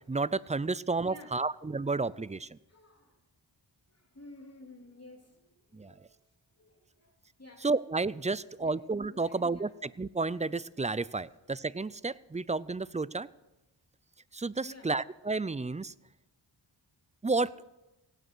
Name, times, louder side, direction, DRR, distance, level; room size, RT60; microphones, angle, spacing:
voice 1, 0.1-2.6 5.7-5.9 7.6-13.3 14.3-15.9 17.2-17.6, right 3 dB, 15° right, 19 dB, 0.4 m, -31 dB
voice 2, 1.0-1.4 2.7-3.2 3.9-6.2 6.5-7.7 8.4-8.7 9.1-9.8 14.6-14.9, left 1 dB, 30° left, 2 dB, 3.3 m, -53 dB
17.0 x 9.4 x 6.1 m, 0.96 s
cardioid pair, 45°, 47 cm